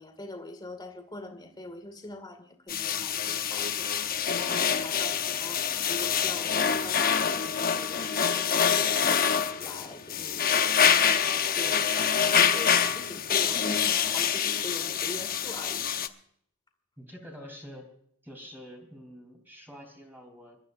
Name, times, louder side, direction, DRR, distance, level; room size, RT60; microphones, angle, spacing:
voice 1, 0.0-16.1, left 2 dB, 20° left, 2.0 m, -43 dB
sound 1, 2.7-16.1, left 7 dB, 40° left, 0.8 m, -26 dB
voice 2, 17.0-17.9 18.2-20.6, equal, 10° right, 3.3 m, -46 dB
26.5 x 13.5 x 2.5 m
head